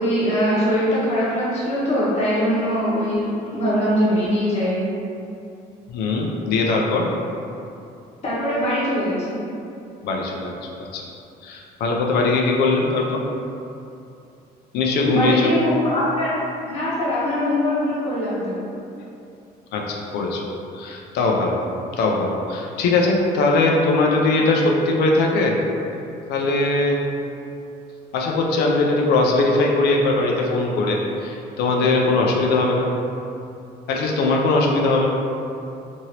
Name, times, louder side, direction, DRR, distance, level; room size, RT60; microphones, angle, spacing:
voice 1, 0.0-4.8 8.2-9.4 15.1-16.3 16.7-18.6, equal, 40° left, -8 dB, 1.1 m, -22 dB
voice 2, 5.9-7.1 10.0-11.0 11.4-13.2 14.7-15.5 19.7-20.4 20.7-21.6 21.9-25.6 26.3-27.0 28.1-32.9 33.9-35.1, left 3 dB, 75° left, 0 dB, 0.4 m, -20 dB
2.9 x 2.7 x 2.8 m, 2.7 s
cardioid pair, 110°, 17 cm